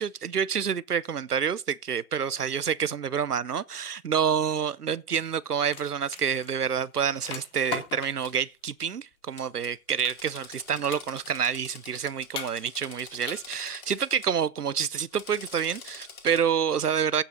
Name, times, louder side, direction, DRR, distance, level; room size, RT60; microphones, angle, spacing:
voice 1, 0.0-17.2, right 7 dB, 90° right, 0.7 m, -28 dB
sound 1, 5.1-8.4 10.0-10.6 10.9-11.5 12.3-12.9 13.2-13.7, left 7 dB, 10° left, 0.8 m, -39 dB
Drill, 8.2-8.3 9.4-14.3 15.0-16.5, left 5 dB, 70° left, 2.5 m, -47 dB
15.5 x 5.8 x 3.9 m
figure-of-eight pair, 130°, 45 cm